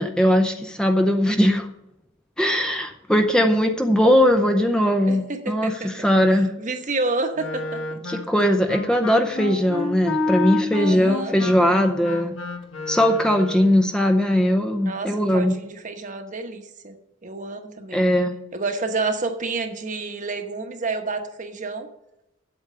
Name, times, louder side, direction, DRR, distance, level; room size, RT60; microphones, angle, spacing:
voice 1, 0.0-1.7 2.4-6.5 8.1-12.3 12.9-15.6 17.9-18.4, equal, 5° left, 4 dB, 0.6 m, -20 dB
voice 2, 5.1-8.0 10.7-11.4 14.8-17.0 17.2-18.0 18.5-21.9, right 3 dB, 40° right, 6 dB, 1.1 m, -29 dB
Wind instrument woodwind instrument, 7.4-13.8, left 3 dB, 70° left, 1.3 m, -29 dB
8.2 x 8.1 x 6.7 m, 0.84 s
head